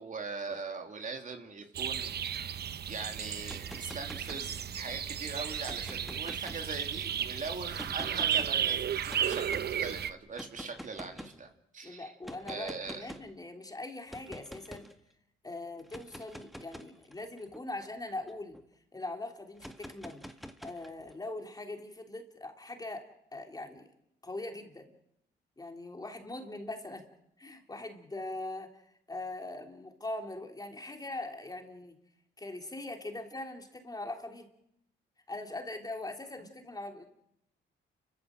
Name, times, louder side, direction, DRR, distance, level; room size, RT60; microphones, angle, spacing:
voice 1, 0.0-2.1 2.9-12.1 12.5-13.1, right 4 dB, 40° right, 4 dB, 2.9 m, -41 dB
sound 1, 1.8-10.1, right 9 dB, 55° right, 1.0 m, -34 dB
sound 2, 3.4-4.9 5.5-7.1 7.7-8.5 9.1-9.7 10.3-11.4 12.2-13.3 14.1-14.9 15.8-18.6 19.6-21.1, equal, ahead, 1.7 m, -47 dB
voice 2, 11.8-14.9 15.4-18.6 18.9-20.2 20.6-23.9 24.2-24.9 25.6-27.0 27.4-32.0 32.4-34.5 35.3-37.0, left 2 dB, 20° left, 4 dB, 3.5 m, -41 dB
30.0 x 14.5 x 7.7 m, 0.79 s
cardioid pair, 90°, 20 cm